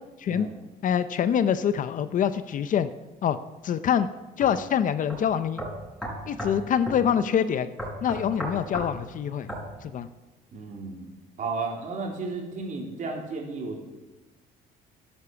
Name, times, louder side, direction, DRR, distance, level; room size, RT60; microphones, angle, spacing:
voice 1, 0.3-0.6 10.5-11.1 11.4-13.8, right 3 dB, 50° right, 0 dB, 3.7 m, -33 dB
voice 2, 0.8-2.9 3.2-3.4 3.6-4.1 4.4-5.6 6.3-7.7 8.0-9.5 9.8-10.1, left 8 dB, 50° left, 12 dB, 0.7 m, -25 dB
sound 1, 4.4-4.5 5.1-5.2 5.6-6.6 6.9-7.0 7.8-8.9 9.5-9.7, equal, 5° left, 5.5 m, -34 dB
11.5 x 11.5 x 7.1 m, 1.2 s
cardioid pair, 110°, 17 cm